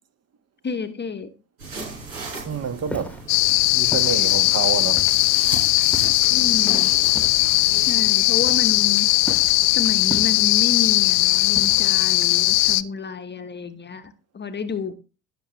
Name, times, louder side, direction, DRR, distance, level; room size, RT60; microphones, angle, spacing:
voice 1, 0.6-1.3 6.3-6.9 7.7-9.1 9.7-14.9, left 5 dB, 20° left, 1.1 m, -30 dB
sound 1, 1.6-7.9, right 3 dB, 75° right, 6.1 m, -36 dB
voice 2, 2.4-3.2 3.7-5.1, right 6 dB, 30° right, 1.4 m, -27 dB
Walk footsteps, 2.9-3.2 3.9-4.1 5.0-5.3 5.9-6.3 7.1-7.5 8.4-8.9 9.3-9.6 10.1-10.6 11.6-12.0, equal, 5° left, 1.5 m, -34 dB
sound 2, 3.3-12.8, left 21 dB, 60° left, 0.7 m, -19 dB
16.5 x 6.7 x 3.1 m
figure-of-eight pair, 60°, 46 cm